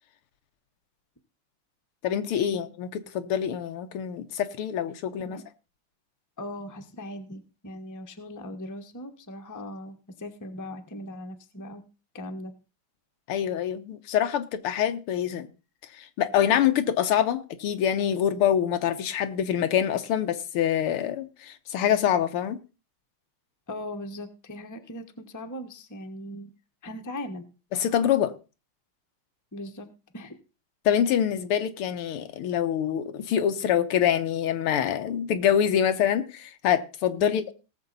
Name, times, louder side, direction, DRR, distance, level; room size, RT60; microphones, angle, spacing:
voice 1, 2.0-5.4 13.3-15.5 15.9-22.6 27.7-28.3 30.9-37.5, left 9 dB, 85° left, 1.9 m, -25 dB
voice 2, 6.4-11.8 12.1-12.5 23.7-26.5 26.8-27.5 29.5-30.4 37.2-37.5, left 1 dB, 15° left, 0.7 m, -39 dB
18.5 x 7.2 x 4.0 m
omnidirectional pair, 2.4 m